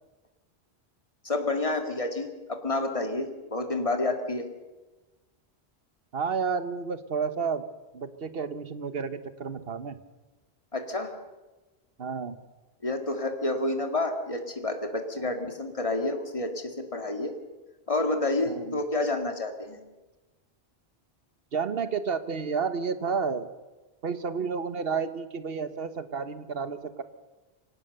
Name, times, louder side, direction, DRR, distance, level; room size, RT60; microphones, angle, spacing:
voice 1, 1.2-4.5 10.7-11.1 12.8-16.6 16.9-17.3 17.9-19.8, left 2 dB, 30° left, 5 dB, 2.3 m, -29 dB
voice 2, 6.1-7.6 7.9-10.0 12.0-12.4 18.5-18.8 21.5-23.5 24.0-27.0, right 5 dB, 65° right, 11 dB, 1.4 m, -31 dB
25.0 x 17.5 x 6.8 m, 1.2 s
omnidirectional pair, 1.1 m